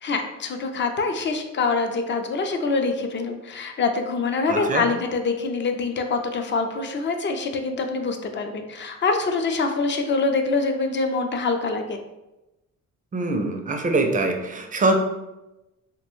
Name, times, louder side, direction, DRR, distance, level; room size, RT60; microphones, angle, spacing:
voice 1, 0.0-12.0, left 4 dB, 40° left, 5 dB, 0.4 m, -25 dB
voice 2, 4.5-4.9 13.1-14.9, right 2 dB, 25° right, 4 dB, 0.4 m, -23 dB
3.2 x 2.1 x 3.0 m, 1.0 s
cardioid pair, 90°, 30 cm